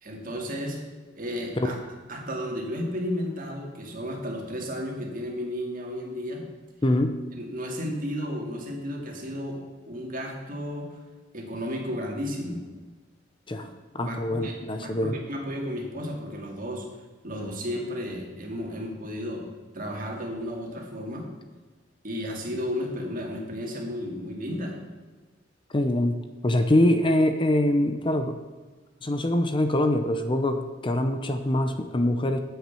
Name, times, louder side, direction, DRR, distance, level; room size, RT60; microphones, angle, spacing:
voice 1, 0.0-0.8 1.1-1.7 2.1-6.4 7.3-9.6 9.9-11.0 11.3-12.6 14.0-14.5 14.8-16.8 17.2-19.5 19.7-21.3 22.0-24.8, equal, 50° right, 1 dB, 2.3 m, -33 dB
voice 2, 6.8-7.2 13.5-13.7 13.9-15.2 25.7-26.2 26.4-28.3 29.0-32.4, left 1 dB, 25° left, 7 dB, 0.7 m, -24 dB
9.3 x 8.1 x 6.9 m, 1.4 s
head